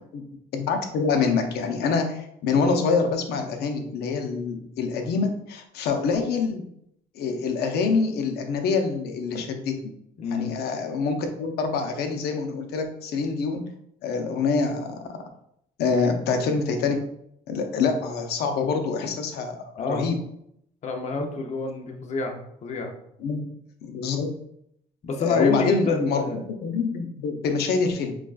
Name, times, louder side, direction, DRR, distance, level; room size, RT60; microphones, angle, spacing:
voice 1, 0.5-6.6 7.1-9.8 10.3-13.6 14.0-14.9 15.8-17.0 17.5-19.6 19.9-20.2 23.2-23.4 23.9-24.3 25.2-26.2 26.6-28.2, left 4 dB, 75° left, 5 dB, 0.7 m, -25 dB
voice 2, 10.2-10.6 19.8-20.1 20.8-22.9 25.0-26.4, left 4 dB, 40° left, 3 dB, 0.7 m, -27 dB
5.8 x 2.4 x 2.4 m, 0.74 s
cardioid pair, 110°, 17 cm